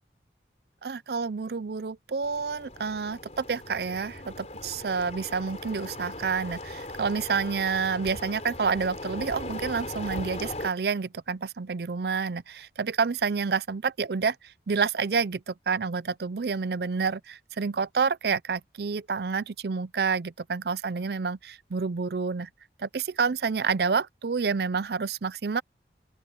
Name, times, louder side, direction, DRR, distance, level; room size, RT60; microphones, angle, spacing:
voice 1, 0.8-14.4 14.7-22.5 22.8-25.6, right 5 dB, 65° right, 0.5 m, -29 dB
sound 1, 2.2-10.7, left 1 dB, 40° left, 4.6 m, -39 dB
open air
head